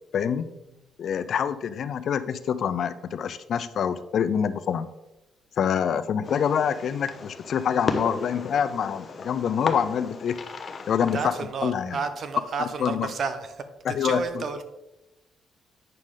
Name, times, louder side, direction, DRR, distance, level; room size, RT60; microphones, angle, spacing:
voice 1, 0.1-0.5 1.0-4.9 5.6-10.4 10.9-11.3 11.6-12.0 12.8-13.1 13.8-14.4, left 8 dB, 60° left, 0.5 m, -26 dB
Fireworks, 6.2-11.5, left 4 dB, 45° left, 0.9 m, -34 dB
voice 2, 11.0-14.6, right 5 dB, 55° right, 0.9 m, -31 dB
9.0 x 6.5 x 3.8 m
cardioid pair, 90°, 0 cm